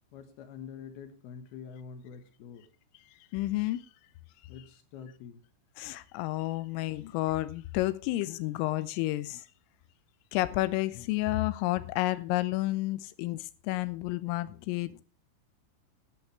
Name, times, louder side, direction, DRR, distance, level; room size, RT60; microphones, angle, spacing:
voice 1, 0.1-2.7 4.5-5.4, left 7 dB, 70° left, 2.6 m, -46 dB
voice 2, 3.3-3.9 5.8-9.4 10.3-15.0, left 18 dB, 85° left, 3.4 m, -31 dB
12.5 x 11.5 x 3.3 m
omnidirectional pair, 5.8 m